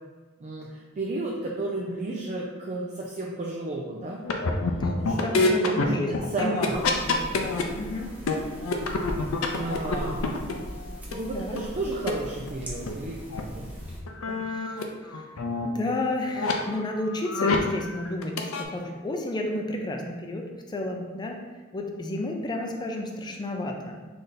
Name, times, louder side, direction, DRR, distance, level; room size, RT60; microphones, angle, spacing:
voice 1, 0.4-4.2 5.0-6.1 6.3-6.8 9.5-10.2 11.1-13.2 13.5-13.7 14.3-14.5, right 2 dB, 35° right, -2 dB, 0.4 m, -33 dB
sound 1, 4.2-7.6 8.0-11.2 11.6-11.7 12.1-12.2 12.5-12.6 12.9-13.0 13.3-13.4 13.7-14.8 15.1-15.7 16.3-16.5 17.1-17.8 18.1-18.6, left 3 dB, 70° left, 0.5 m, -27 dB
voice 2, 4.8-6.8 7.1-8.1 11.3-11.6 14.5-15.3 15.7-21.4 21.7-24.0, left 1 dB, 20° left, 1 dB, 0.5 m, -32 dB
sound 2, 6.7-14.0, equal, 10° right, 0.9 m, -40 dB
4.0 x 3.3 x 4.0 m, 1.3 s
head